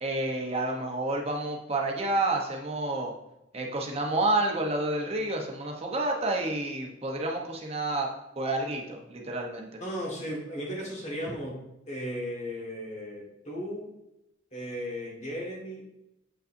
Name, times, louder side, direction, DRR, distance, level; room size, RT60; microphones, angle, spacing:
voice 1, 0.0-3.1 3.5-8.1 8.4-9.7 11.3-11.4, right 2 dB, 30° right, 1 dB, 1.0 m, -29 dB
voice 2, 9.8-11.6 11.9-13.9 14.5-15.8, equal, 35° left, -3 dB, 1.9 m, -35 dB
7.7 x 5.4 x 2.7 m, 0.88 s
head